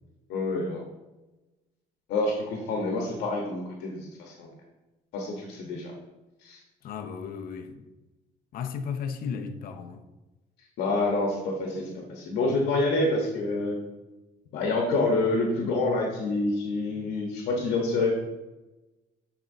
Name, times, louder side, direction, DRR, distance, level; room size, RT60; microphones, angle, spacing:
voice 1, 0.3-0.8 2.1-4.5 5.1-5.9 6.4-6.6 10.8-13.8 14.5-18.1, left 2 dB, 80° left, 1.0 m, -27 dB
voice 2, 6.8-7.8 8.5-10.0, left 6 dB, 60° left, 0.6 m, -35 dB
8.5 x 4.2 x 2.7 m
cardioid pair, 110°, 17 cm